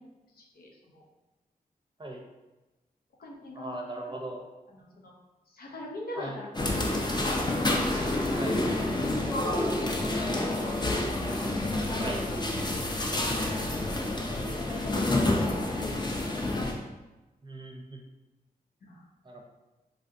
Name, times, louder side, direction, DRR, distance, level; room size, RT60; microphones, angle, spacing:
voice 1, 0.4-1.0 3.2-3.8 4.1-4.2 4.7-5.1 5.5-7.0 7.2-7.4 7.7-11.3 14.4-15.1 15.5-16.7 18.8-19.0, left 1 dB, 75° left, -1 dB, 0.6 m, -43 dB
voice 2, 3.5-4.4 6.2-6.3 8.3-8.6 12.0-12.2 17.4-18.0 19.3-19.4, right 1 dB, 30° right, 1 dB, 0.6 m, -38 dB
sound 1, 6.5-16.7, left 1 dB, 25° left, 0.6 m, -28 dB
3.2 x 2.4 x 2.6 m, 1.1 s
cardioid pair, 50°, 16 cm